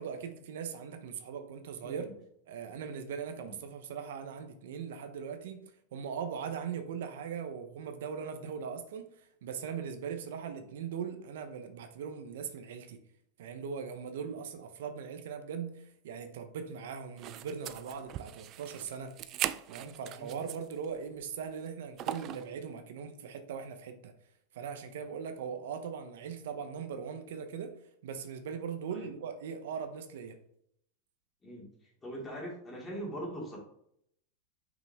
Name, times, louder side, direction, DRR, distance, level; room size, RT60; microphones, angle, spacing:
voice 1, 0.0-2.1 2.5-13.0 13.4-19.2 19.7-24.1 24.5-30.4, right 7 dB, 75° right, 0.9 m, -40 dB
voice 2, 1.8-2.1 3.4-3.6 14.2-14.4 20.0-20.4 28.9-29.1 31.4-31.6 32.0-33.6, right 1 dB, 15° left, 2.6 m, -42 dB
sound 1, 17.2-20.9 21.2-21.3 22.0-22.5, right 12 dB, 35° right, 0.3 m, -39 dB
6.2 x 5.5 x 3.6 m
supercardioid pair, 145°, 0 cm